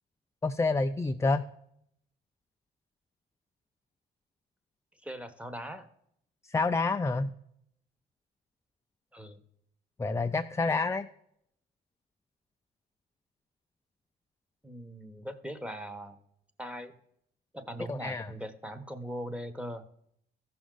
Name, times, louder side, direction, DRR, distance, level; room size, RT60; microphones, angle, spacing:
voice 1, 0.4-1.4 6.4-7.3 10.0-11.1 17.9-18.3, left 3 dB, 15° left, 7 dB, 0.4 m, -28 dB
voice 2, 5.0-5.9 9.1-9.4 14.6-16.2 16.6-17.0 17.5-19.9, equal, 5° right, 11 dB, 1.1 m, -40 dB
14.5 x 6.1 x 3.8 m, 0.73 s
cardioid pair, 90°, 20 cm